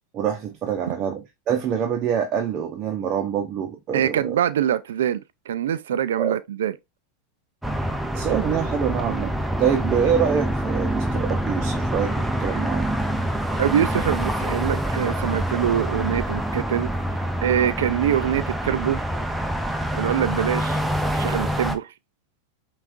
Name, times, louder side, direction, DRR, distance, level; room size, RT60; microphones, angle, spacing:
voice 1, 0.1-4.4 6.2-6.4 8.1-12.9, right 8 dB, 40° right, 0.7 m, -25 dB
voice 2, 3.9-6.7 13.6-16.9 17.4-19.0 19.9-20.8 21.1-21.9, right 10 dB, 80° right, 0.3 m, -24 dB
sound 1, 7.6-21.8, right 1 dB, 5° right, 0.6 m, -26 dB
5.7 x 2.4 x 2.5 m
hypercardioid pair, 110°, 0 cm